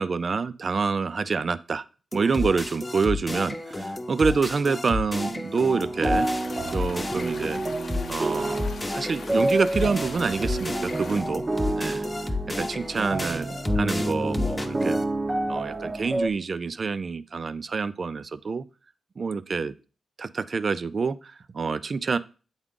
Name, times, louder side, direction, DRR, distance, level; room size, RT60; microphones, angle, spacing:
voice 1, 0.0-1.8 2.1-6.3 6.7-7.6 8.1-11.4 11.8-12.1 12.6-13.5 13.7-15.0 15.5-18.6 19.2-19.7 20.2-22.2, right 5 dB, 50° right, 15 dB, 0.4 m, -27 dB
sound 1, 2.1-15.0, left 2 dB, 20° left, 0.9 m, -32 dB
sound 2, 5.7-16.3, right 2 dB, 30° right, 0.7 m, -29 dB
sound 3, 6.1-11.2, left 5 dB, 70° left, 0.7 m, -43 dB
8.0 x 3.6 x 3.7 m, 0.35 s
cardioid pair, 75°, 0 cm